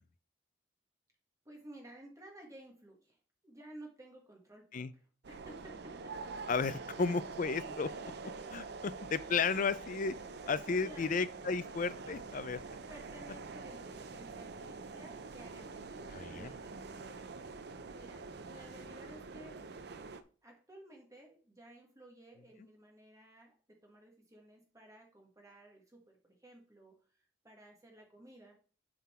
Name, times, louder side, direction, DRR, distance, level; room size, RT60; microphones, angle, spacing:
voice 1, 1.4-3.2 3.4-6.1 6.7-7.0 7.6-8.1 10.2-10.4 10.7-11.1 12.9-19.6 20.4-27.2 27.4-28.5, right 1 dB, 20° right, 1.5 m, -55 dB
sound 1, 5.2-20.2, right 4 dB, 60° right, 0.6 m, -46 dB
voice 2, 6.5-7.9 8.5-10.1 10.5-12.6 16.1-16.5, left 5 dB, 45° left, 0.4 m, -33 dB
9.4 x 3.8 x 4.4 m
head